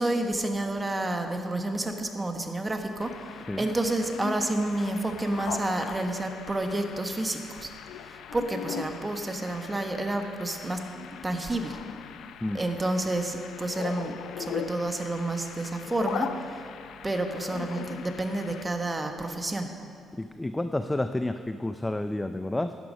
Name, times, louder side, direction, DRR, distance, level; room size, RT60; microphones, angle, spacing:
voice 1, 0.0-3.1 3.6-7.7 8.1-10.8 11.2-11.8 12.5-16.4 17.0-19.7, right 2 dB, 20° right, 5 dB, 1.1 m, -29 dB
sound 1, 3.0-18.6, left 8 dB, 80° left, 0.5 m, -40 dB
voice 2, 20.2-22.7, left 1 dB, 10° left, 9 dB, 0.4 m, -30 dB
11.5 x 9.6 x 5.4 m, 2.4 s
cardioid pair, 90°, 0 cm